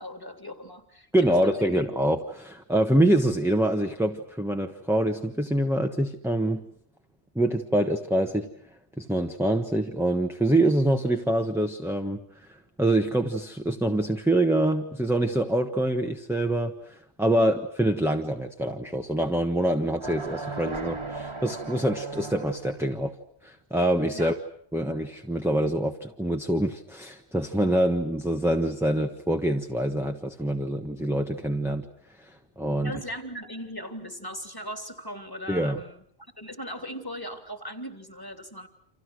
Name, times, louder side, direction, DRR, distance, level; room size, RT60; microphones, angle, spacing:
voice 1, 0.0-1.8 17.3-17.5 24.1-24.3 32.8-36.0 36.4-38.7, equal, 20° left, 7 dB, 3.0 m, -38 dB
voice 2, 1.1-6.7 7.3-8.5 9.0-12.2 12.5-23.2 23.4-24.4 24.7-31.9 32.3-32.9 35.5-35.8, right 1 dB, ahead, 4 dB, 1.3 m, -25 dB
sound 1, 20.0-22.9, right 3 dB, 25° right, 1.8 m, -36 dB
29.5 x 27.0 x 6.3 m, 0.64 s
omnidirectional pair, 1.1 m